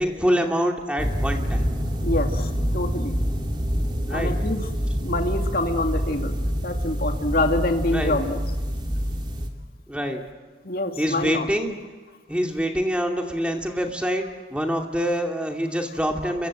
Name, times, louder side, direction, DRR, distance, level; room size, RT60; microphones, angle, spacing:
voice 1, 0.0-1.7 4.1-4.3 7.9-8.2 9.9-10.2 11.0-11.7 12.3-14.2 14.5-16.5, equal, 5° right, 2 dB, 2.7 m, -25 dB
sound 1, 1.0-9.5, equal, 25° right, 2.8 m, -26 dB
voice 2, 2.0-3.1 4.1-4.6 5.0-8.4 10.6-11.5, left 1 dB, 50° left, 4 dB, 2.3 m, -26 dB
29.5 x 23.5 x 7.7 m, 1.4 s
head